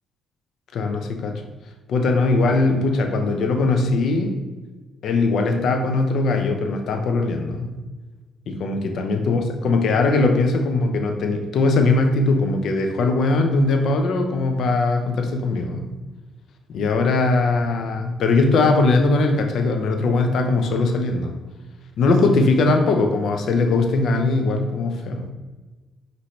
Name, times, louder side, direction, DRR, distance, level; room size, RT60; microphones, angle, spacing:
voice 1, 0.7-1.4 1.9-4.4 5.0-7.7 8.5-15.8 16.7-21.3 22.0-25.3, left 3 dB, 70° left, 4 dB, 0.6 m, -20 dB
5.4 x 2.7 x 3.1 m, 1.2 s
cardioid pair, 90°, 0 cm